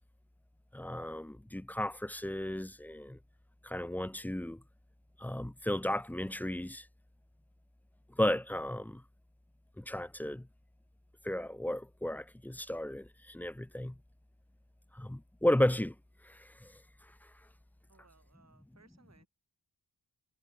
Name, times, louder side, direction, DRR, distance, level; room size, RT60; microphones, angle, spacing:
voice 1, 0.7-3.2 3.6-4.6 5.2-6.9 8.1-9.0 9.8-10.5 11.2-14.0 14.9-16.0 16.2-17.3, left 1 dB, 5° left, 0.5 m, -34 dB
voice 2, 17.9-19.3, right 4 dB, 40° right, 4.6 m, -65 dB
wide cardioid pair, 110°, 42 cm